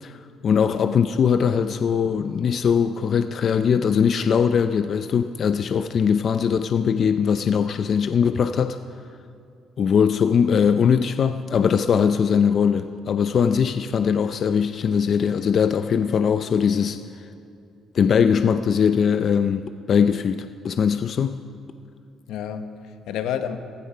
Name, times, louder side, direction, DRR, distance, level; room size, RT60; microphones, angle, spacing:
voice 1, 0.0-8.8 9.8-17.0 17.9-21.4, left 7 dB, 45° left, 9 dB, 0.5 m, -21 dB
voice 2, 22.3-23.6, left 9 dB, 85° left, 8 dB, 1.1 m, -31 dB
15.5 x 15.5 x 5.6 m, 2.5 s
cardioid pair, 130°, 0 cm